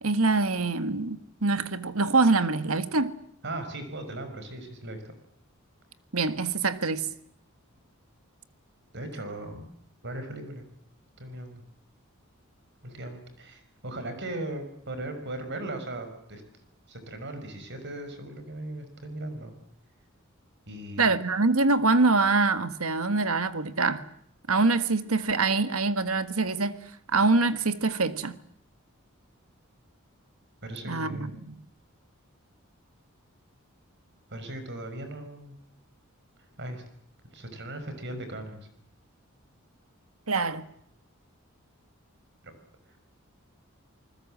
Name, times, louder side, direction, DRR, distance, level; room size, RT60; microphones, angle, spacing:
voice 1, 0.0-3.1 6.1-7.1 21.0-24.0 24.5-26.8 27.1-28.4 30.8-31.6 40.3-40.6, right 3 dB, 85° right, 1.6 m, -24 dB
voice 2, 3.4-5.0 8.9-9.6 10.0-10.6 11.2-11.6 12.8-16.4 16.9-19.6 20.7-21.1 30.6-31.3 34.3-35.6 36.6-36.8 37.3-38.7 42.4-42.5, right 1 dB, 55° right, 5.6 m, -38 dB
28.5 x 20.5 x 7.6 m
head